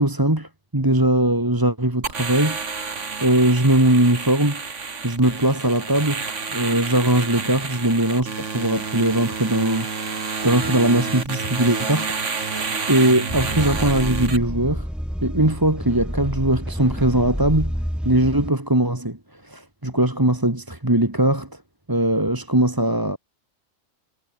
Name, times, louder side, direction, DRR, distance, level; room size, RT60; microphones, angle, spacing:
voice 1, 0.0-4.6 5.0-6.2 6.5-12.6 12.9-14.9 15.2-17.8 18.0-19.2 19.4-21.5 21.9-23.2, right 1 dB, 15° right, 2.2 m, -20 dB
sound 1, 2.0-14.4, right 5 dB, 70° right, 2.3 m, -29 dB
sound 2, 13.3-18.5, equal, ahead, 1.6 m, -29 dB
omnidirectional pair, 1.3 m